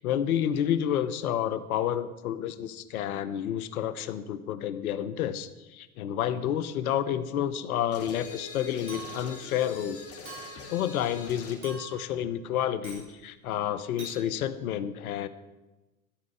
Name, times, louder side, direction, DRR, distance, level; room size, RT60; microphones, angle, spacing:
voice 1, 0.0-10.0 10.7-15.3, left 10 dB, 70° left, 14 dB, 0.9 m, -30 dB
sound 1, 7.9-11.7, left 4 dB, 30° left, 2.3 m, -43 dB
Chink clink, 8.9-9.4 10.2-10.7 11.6-12.1 12.8-13.1 14.0-14.2, right 4 dB, 70° right, 5.1 m, -44 dB
13.5 x 5.2 x 8.3 m, 1.1 s
hypercardioid pair, 90°, 45 cm